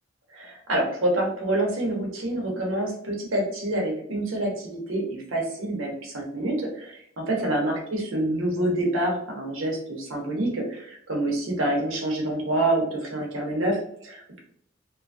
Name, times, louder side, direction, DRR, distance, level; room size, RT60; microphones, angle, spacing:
voice 1, 0.3-14.4, right 1 dB, 80° right, 0 dB, 0.9 m, -27 dB
2.8 x 2.4 x 2.6 m, 0.68 s
head